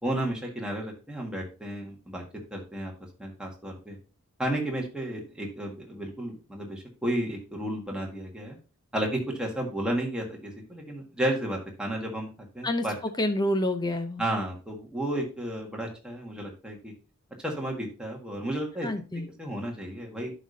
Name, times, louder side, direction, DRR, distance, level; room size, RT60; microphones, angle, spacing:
voice 1, 0.0-2.2 2.5-2.9 3.2-4.0 4.4-8.6 8.9-12.3 12.5-12.9 14.2-16.9 17.4-18.9 19.4-20.3, right 1 dB, 5° right, -1 dB, 1.7 m, -32 dB
voice 2, 12.6-14.2 18.8-19.3, left 1 dB, 20° left, 8 dB, 0.6 m, -28 dB
11.5 x 5.0 x 2.7 m, 0.33 s
head